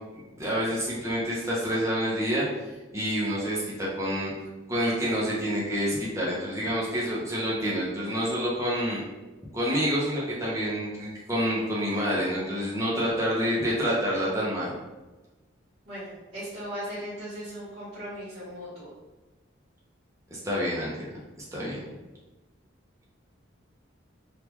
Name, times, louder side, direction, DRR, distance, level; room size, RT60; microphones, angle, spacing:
voice 1, 0.1-2.5 2.9-4.3 4.7-9.0 9.5-14.7 20.3-20.9 21.5-21.8, equal, 15° right, -6 dB, 0.7 m, -28 dB
voice 2, 15.9-18.9, equal, 75° right, -13 dB, 1.4 m, -38 dB
3.4 x 2.4 x 3.0 m, 1.1 s
head